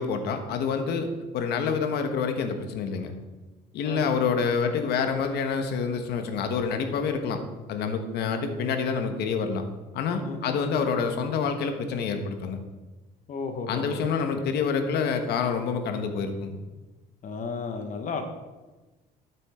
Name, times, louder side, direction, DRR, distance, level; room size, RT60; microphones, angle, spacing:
voice 1, 0.0-3.1 3.7-7.4 7.7-9.7 9.9-12.6 13.7-16.6, left 5 dB, 75° left, 6 dB, 1.4 m, -27 dB
voice 2, 3.8-4.2 10.2-10.6 13.3-14.0 14.3-14.4 17.2-18.2, left 4 dB, 50° left, 6 dB, 1.4 m, -34 dB
12.5 x 7.7 x 3.8 m, 1.2 s
cardioid pair, 110°, 17 cm